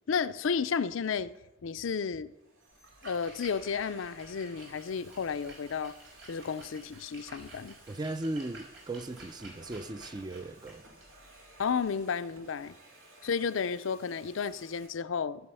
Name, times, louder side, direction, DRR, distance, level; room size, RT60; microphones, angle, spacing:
voice 1, 0.1-1.3 1.6-2.3 3.0-5.9 6.3-7.8 11.6-12.7 13.2-15.5, left 6 dB, 80° left, 0.5 m, -32 dB
Domestic sounds home sounds, 1.0-1.4 2.2-14.9, right 1 dB, 85° right, 3.0 m, -56 dB
Splash splatter, 2.7-12.6, right 2 dB, 65° right, 4.1 m, -53 dB
voice 2, 7.9-10.8, right 2 dB, 20° right, 0.4 m, -37 dB
16.0 x 7.6 x 5.5 m
head